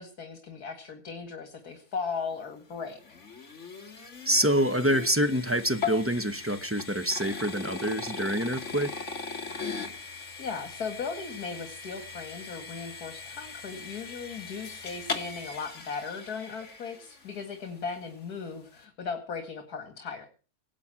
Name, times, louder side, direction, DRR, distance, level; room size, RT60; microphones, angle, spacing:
voice 1, 0.0-3.0 10.4-20.3, left 5 dB, 80° left, 2.4 m, -37 dB
sound 1, 2.3-17.5, left 5 dB, 50° left, 2.4 m, -39 dB
voice 2, 4.2-9.0, equal, 10° right, 0.8 m, -26 dB
18.5 x 8.7 x 7.5 m
omnidirectional pair, 1.6 m